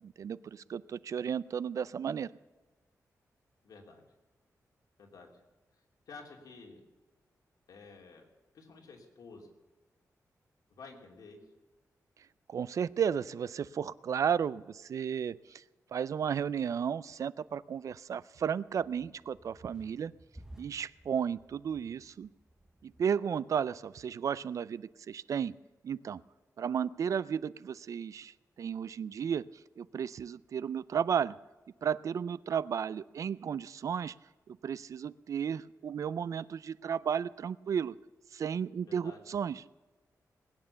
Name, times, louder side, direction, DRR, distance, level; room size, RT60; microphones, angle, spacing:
voice 1, 0.0-2.3 12.5-15.6 15.9-20.1 20.6-22.3 22.8-25.5 25.8-26.2 26.6-29.4 29.8-31.4 31.8-34.1 34.5-38.0 38.3-39.6, right 7 dB, 60° right, 19 dB, 0.4 m, -33 dB
voice 2, 3.6-4.0 5.0-5.4 6.1-6.8 7.7-8.2 8.5-9.5 10.7-11.4 38.8-39.2, left 4 dB, 90° left, 1 dB, 3.0 m, -51 dB
sound 1, 18.8-23.1, right 1 dB, 10° right, 0.7 m, -56 dB
20.5 x 8.9 x 6.9 m, 1.2 s
wide cardioid pair, 175°, 6 cm